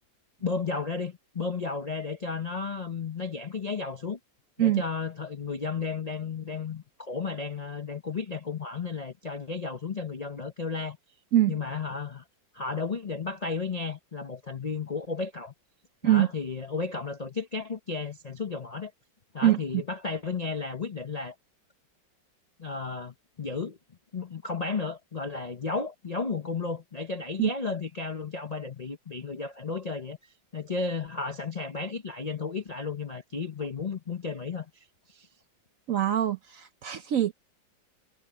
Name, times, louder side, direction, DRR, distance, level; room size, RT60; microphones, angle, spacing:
voice 1, 0.4-4.2 4.6-11.0 11.5-12.2 12.5-15.5 16.0-18.9 19.3-21.3 22.6-23.8 24.1-30.2 30.5-35.3, left 4 dB, 85° left, 0.3 m, -33 dB
voice 2, 35.9-37.3, right 12 dB, 65° right, 0.8 m, -23 dB
omnidirectional pair, 2.1 m